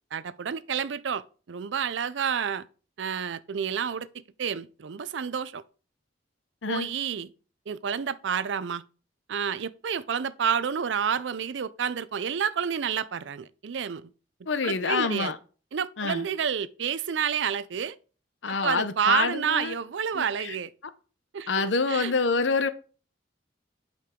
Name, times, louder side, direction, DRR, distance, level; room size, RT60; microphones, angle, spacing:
voice 1, 0.1-1.2 1.5-2.7 3.0-4.1 4.4-5.6 6.7-7.3 7.7-8.8 9.3-14.1 14.6-15.3 15.7-18.0 18.6-20.7 21.3-22.1, right 7 dB, 75° right, 0.5 m, -29 dB
voice 2, 14.5-15.4 16.0-16.3 18.4-19.7 20.1-20.6 21.5-22.7, left 4 dB, 85° left, 0.7 m, -27 dB
8.4 x 5.2 x 3.7 m
head